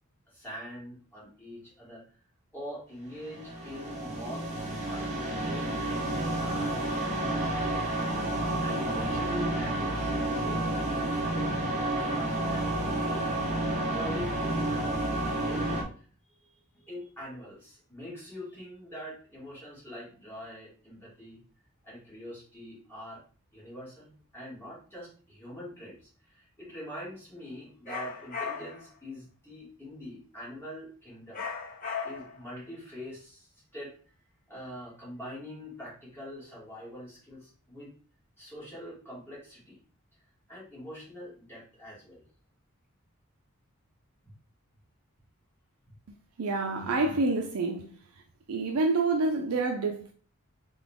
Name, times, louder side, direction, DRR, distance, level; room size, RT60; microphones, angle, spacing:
voice 1, 0.3-2.0 2.5-4.5 4.8-7.5 8.6-11.6 11.9-13.2 13.7-16.1 16.4-23.2 23.5-31.4 32.0-33.9 34.5-37.9 38.4-39.8 40.5-42.2 45.9-46.0, equal, 10° left, 2.4 m, -44 dB
sound 1, 3.2-15.8, right 1 dB, 30° right, 1.0 m, -30 dB
sound 2, 27.9-28.9 31.3-32.4, left 5 dB, 35° left, 1.3 m, -36 dB
voice 2, 46.4-48.2 48.5-50.1, right 3 dB, 85° right, 0.5 m, -28 dB
4.0 x 3.7 x 3.6 m
head